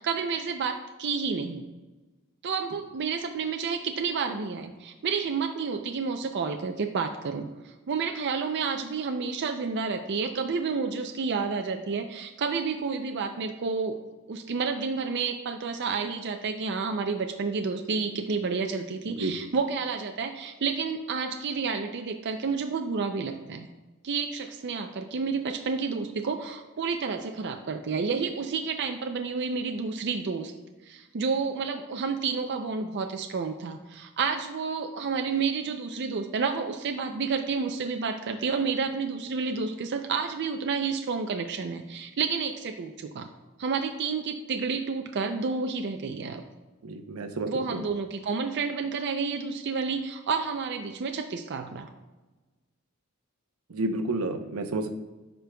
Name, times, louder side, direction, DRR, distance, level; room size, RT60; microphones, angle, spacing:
voice 1, 0.0-1.6 2.4-14.0 14.3-23.7 24.0-30.5 30.8-43.3 43.6-46.4 47.5-51.9, right 5 dB, 55° right, 5 dB, 0.5 m, -30 dB
voice 2, 46.8-47.8 53.7-54.9, right 2 dB, 90° right, 5 dB, 0.7 m, -30 dB
13.5 x 5.2 x 2.2 m, 1.2 s
head